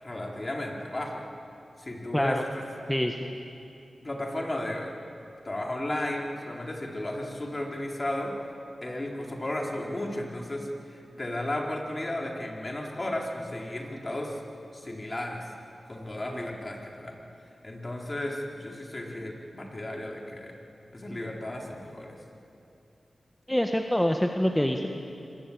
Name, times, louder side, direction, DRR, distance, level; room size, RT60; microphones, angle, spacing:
voice 1, 0.0-1.2 1.8-2.6 4.0-4.9 5.4-8.3 8.8-14.4 14.7-15.4 15.9-17.1 17.6-20.5 20.9-22.2, left 1 dB, 35° left, 1 dB, 4.2 m, -34 dB
voice 2, 2.1-2.4 2.9-3.4 23.5-24.9, equal, 10° left, 4 dB, 1.6 m, -25 dB
24.5 x 20.5 x 8.7 m, 2.7 s
cardioid pair, 45°, 0 cm